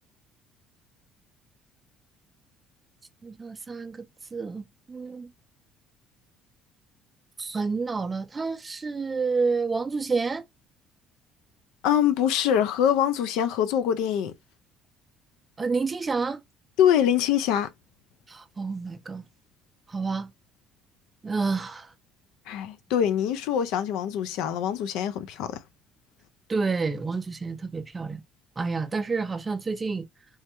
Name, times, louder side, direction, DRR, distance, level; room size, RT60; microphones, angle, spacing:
voice 1, 3.2-5.3 7.4-10.4 15.6-16.4 18.3-19.2 19.9-20.3 21.2-21.9 26.5-28.2 28.6-30.1, right 4 dB, 20° right, 0.4 m, -29 dB
voice 2, 11.8-14.3 16.8-17.7 22.5-25.6, left 9 dB, 85° left, 0.3 m, -24 dB
3.4 x 2.1 x 2.9 m
cardioid pair, 130°, 0 cm